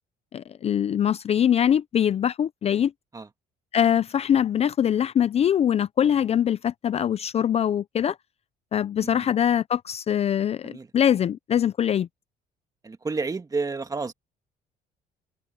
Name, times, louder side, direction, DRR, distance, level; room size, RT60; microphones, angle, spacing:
voice 1, 0.3-2.9 3.7-8.2 8.7-12.1, left 9 dB, 40° left, 0.4 m, -23 dB
voice 2, 12.8-14.1, right 4 dB, 20° right, 1.8 m, -30 dB
cardioid pair, 110°, 17 cm